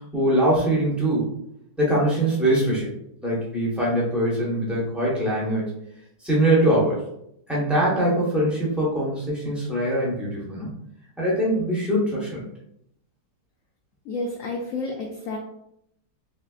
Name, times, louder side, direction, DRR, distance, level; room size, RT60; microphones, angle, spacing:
voice 1, 0.1-1.3 1.8-2.9 3.2-5.7 6.2-7.0 7.5-10.7 11.2-12.5, right 1 dB, ahead, -6 dB, 0.5 m, -22 dB
voice 2, 14.1-15.4, left 2 dB, 80° left, 0 dB, 0.7 m, -30 dB
3.4 x 3.1 x 2.3 m, 0.75 s
omnidirectional pair, 1.9 m